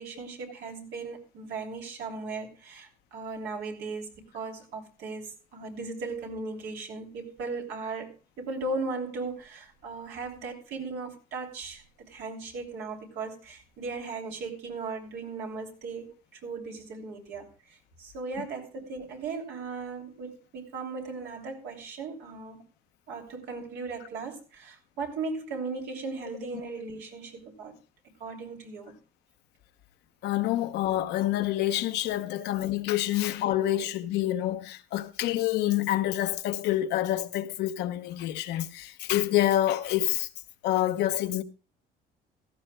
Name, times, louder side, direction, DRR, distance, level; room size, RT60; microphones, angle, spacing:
voice 1, 0.0-22.6 23.1-27.8 28.2-28.9 33.8-33.9, right 3 dB, 80° right, 3.0 m, -37 dB
voice 2, 30.2-40.3 40.6-41.4, left 14 dB, 85° left, 0.9 m, -27 dB
16.5 x 14.0 x 2.2 m
cardioid pair, 110°, 17 cm